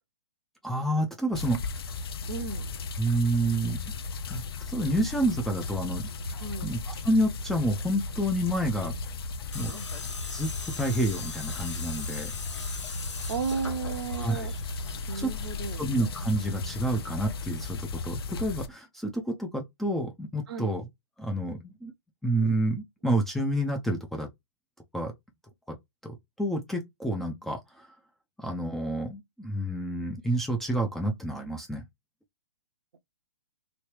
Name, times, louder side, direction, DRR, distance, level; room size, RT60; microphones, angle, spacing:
voice 1, 0.6-1.6 3.0-3.8 4.3-6.1 6.6-8.9 9.5-9.7 10.3-10.5 10.8-12.3 14.2-14.5 15.2-15.3 15.8-20.9 21.2-21.9 22.2-24.3 24.9-25.1 25.7-25.8 26.0-27.9 28.4-31.8, right 1 dB, ahead, 0.4 m, -29 dB
sound 1, 1.3-18.7, left 3 dB, 55° left, 0.6 m, -36 dB
voice 2, 2.3-2.7 6.4-6.7 9.7-9.9 12.6-12.8 13.3-14.5 15.1-15.8 20.5-20.7, right 5 dB, 60° right, 0.7 m, -34 dB
Tools, 9.5-17.3, left 4 dB, 80° left, 1.2 m, -42 dB
3.1 x 2.8 x 3.1 m
figure-of-eight pair, 130°, 15 cm